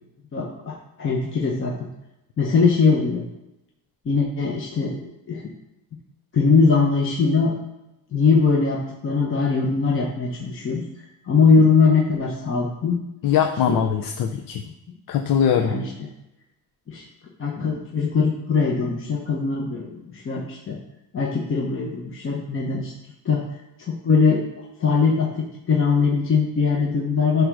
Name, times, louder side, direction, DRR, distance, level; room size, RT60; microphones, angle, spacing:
voice 1, 0.3-1.7 2.4-3.2 4.0-5.5 6.3-7.5 8.1-13.0 13.7-13.8 15.6-15.9 16.9-17.0 17.4-20.8 21.1-22.9 23.2-23.4 23.9-24.4 24.8-27.4, left 5 dB, 35° left, -2 dB, 1.1 m, -21 dB
voice 2, 13.2-14.6 15.1-15.7, left 8 dB, 65° left, 5 dB, 0.7 m, -21 dB
10.5 x 3.5 x 6.2 m, 0.91 s
cardioid pair, 150°, 36 cm